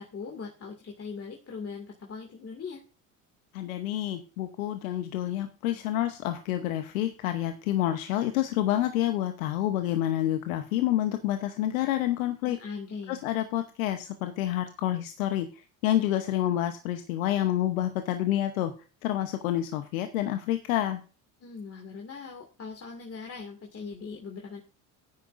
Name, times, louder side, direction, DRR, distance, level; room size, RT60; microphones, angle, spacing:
voice 1, 0.0-2.8 12.4-13.3 21.4-24.6, left 5 dB, 35° left, 1 dB, 2.3 m, -40 dB
voice 2, 3.5-12.6 13.1-15.5 15.8-18.7 19.0-21.0, left 13 dB, 85° left, 8 dB, 1.0 m, -28 dB
13.0 x 9.7 x 2.6 m, 0.35 s
hypercardioid pair, 75°, 40 cm